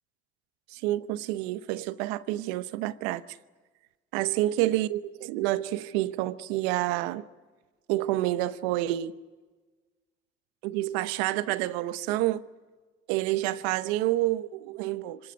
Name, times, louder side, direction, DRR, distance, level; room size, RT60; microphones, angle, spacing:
voice 1, 0.7-3.2 4.1-7.2 7.9-9.1 10.6-12.4 13.1-15.2, right 16 dB, 85° right, 0.9 m, -28 dB
25.0 x 19.0 x 9.6 m
hypercardioid pair, 55°, 32 cm